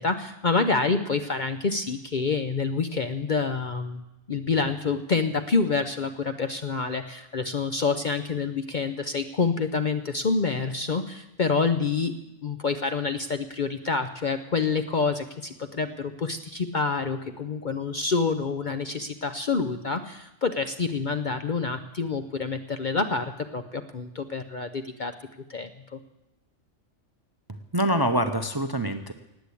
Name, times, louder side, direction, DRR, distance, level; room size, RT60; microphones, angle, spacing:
voice 1, 0.0-4.0 4.3-12.1 12.4-25.1 25.5-26.0, left 4 dB, 45° left, 9 dB, 0.7 m, -27 dB
voice 2, 27.5-29.1, equal, 25° right, 9 dB, 0.6 m, -25 dB
18.5 x 8.3 x 8.4 m, 0.91 s
omnidirectional pair, 1.4 m